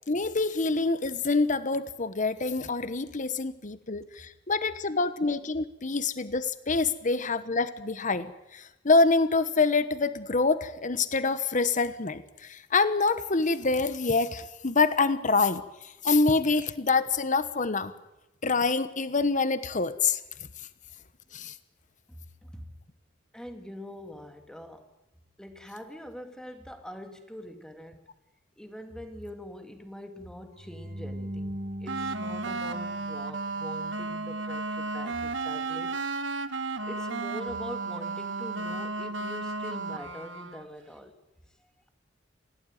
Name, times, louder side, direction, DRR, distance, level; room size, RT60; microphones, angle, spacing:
voice 1, 0.1-17.9 18.4-20.2 21.3-21.6, left 3 dB, 45° left, 1.1 m, -26 dB
voice 2, 22.1-22.7 23.3-24.9 25.4-28.1 28.6-36.1 36.4-41.1, equal, 5° left, 2.6 m, -43 dB
sound 1, 30.5-33.7, equal, 35° right, 1.7 m, -39 dB
sound 2, 31.9-40.7, right 3 dB, 75° right, 1.3 m, -33 dB
27.5 x 17.0 x 9.3 m
head